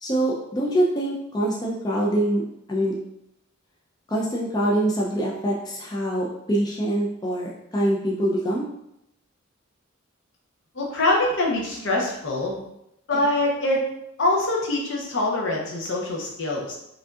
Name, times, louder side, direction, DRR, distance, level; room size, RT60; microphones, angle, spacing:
voice 1, 0.0-2.4 2.7-2.9 4.1-8.7 13.1-13.2, right 1 dB, 20° left, -3 dB, 0.4 m, -24 dB
voice 2, 10.7-12.6 13.1-13.8 14.2-16.8, left 2 dB, 65° left, -1 dB, 0.9 m, -24 dB
4.9 x 2.7 x 2.4 m, 0.81 s
head